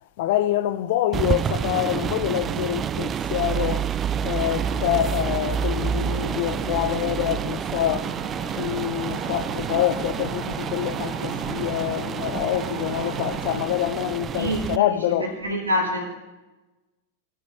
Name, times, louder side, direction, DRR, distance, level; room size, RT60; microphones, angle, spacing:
voice 1, 0.2-3.9 4.2-8.1 8.6-15.3, left 13 dB, 50° left, 0.6 m, -26 dB
sound 1, 1.1-14.8, right 8 dB, 25° right, 0.3 m, -29 dB
sound 2, 4.5-13.6, right 5 dB, 40° right, 1.8 m, -35 dB
voice 2, 14.4-16.1, left 1 dB, 75° right, 2.7 m, -27 dB
18.5 x 9.7 x 3.1 m
figure-of-eight pair, 90°, 0 cm